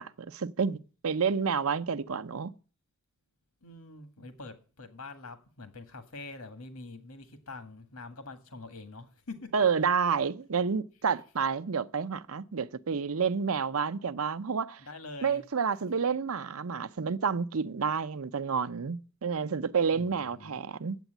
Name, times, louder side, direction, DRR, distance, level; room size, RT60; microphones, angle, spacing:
voice 1, 0.0-2.5 9.5-14.8 15.2-21.0, right 6 dB, 70° right, 0.7 m, -29 dB
voice 2, 3.6-9.5 14.8-15.4 19.9-20.6, left 3 dB, 80° left, 1.8 m, -45 dB
9.1 x 8.2 x 9.0 m
head